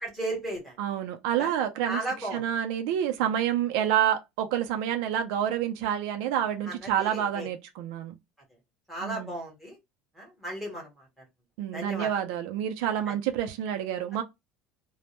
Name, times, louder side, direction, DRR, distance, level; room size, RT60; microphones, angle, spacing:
voice 1, 0.0-0.8 1.4-1.5 1.9-2.4 6.7-7.5 8.9-9.8 10.1-11.2 11.7-12.1 13.1-13.2, right 1 dB, ahead, 1.0 m, -35 dB
voice 2, 0.8-2.0 2.3-8.2 9.0-9.3 11.6-14.2, right 10 dB, 80° right, 0.4 m, -28 dB
2.1 x 2.0 x 2.8 m
cardioid pair, 170°, 4 cm